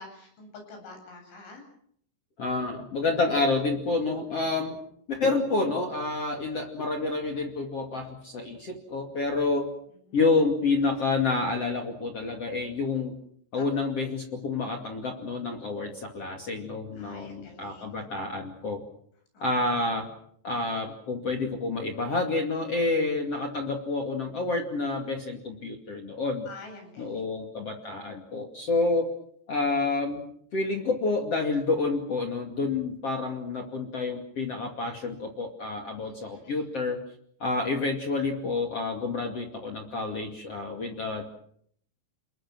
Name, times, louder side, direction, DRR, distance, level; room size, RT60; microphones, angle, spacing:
voice 1, 0.0-1.6 10.0-10.2 13.5-13.6 16.9-17.9 19.3-19.5 26.5-27.2 35.9-36.7, left 3 dB, 85° left, 3 dB, 10.5 m, -47 dB
voice 2, 2.4-4.8 5.1-9.7 10.1-13.1 13.5-18.8 19.4-20.1 20.4-26.5 27.0-29.1 29.5-30.2 30.5-37.0 37.4-41.2, left 3 dB, 40° left, 4 dB, 2.8 m, -28 dB
30.0 x 21.5 x 6.3 m, 0.67 s
omnidirectional pair, 5.2 m